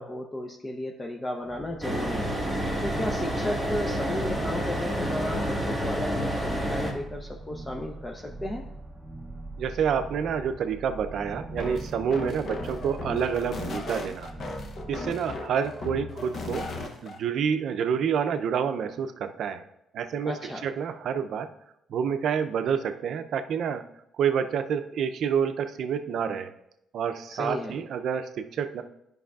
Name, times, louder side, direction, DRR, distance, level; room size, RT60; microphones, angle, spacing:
voice 1, 0.0-2.4 2.8-8.6 20.2-20.7 27.3-27.8, left 1 dB, 25° left, 2 dB, 0.6 m, -34 dB
sound 1, 1.4-15.1, right 2 dB, 10° right, 0.7 m, -42 dB
sound 2, 1.8-6.9, equal, 10° left, 1.4 m, -29 dB
voice 2, 9.6-14.3 14.9-16.7 17.0-19.6 19.9-20.3 20.6-21.5 21.9-23.8 24.1-26.5 26.9-28.8, right 7 dB, 70° right, 8 dB, 0.5 m, -28 dB
sound 3, 11.5-17.2, left 2 dB, 55° left, 0.8 m, -36 dB
10.0 x 5.3 x 2.4 m, 0.81 s
cardioid pair, 90°, 0 cm